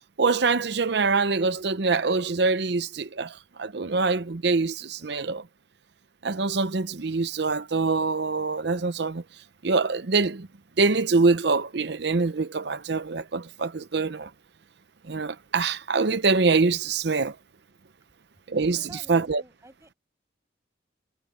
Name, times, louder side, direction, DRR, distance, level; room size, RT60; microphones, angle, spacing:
voice 1, 0.2-3.3 3.6-5.4 6.2-9.2 9.6-10.5 10.8-14.3 15.1-17.3 18.5-19.4, right 4 dB, 65° right, 0.7 m, -24 dB
voice 2, 18.7-20.0, right 1 dB, 15° right, 6.9 m, -49 dB
head